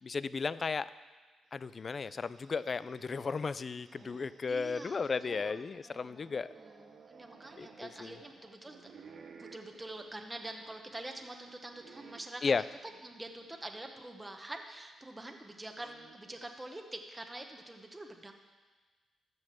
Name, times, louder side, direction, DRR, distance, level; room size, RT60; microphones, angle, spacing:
voice 1, 0.0-0.9 1.5-6.5 7.6-8.2 12.4-12.6, left 5 dB, 40° left, 16 dB, 0.3 m, -34 dB
sound 1, 1.6-13.8 14.3-14.4 15.4-16.7, right 5 dB, 60° right, 1.1 m, -58 dB
voice 2, 4.4-8.8 9.4-18.3, right 1 dB, 15° right, 4 dB, 1.1 m, -46 dB
13.5 x 5.4 x 7.4 m, 1.4 s
cardioid pair, 105°, 0 cm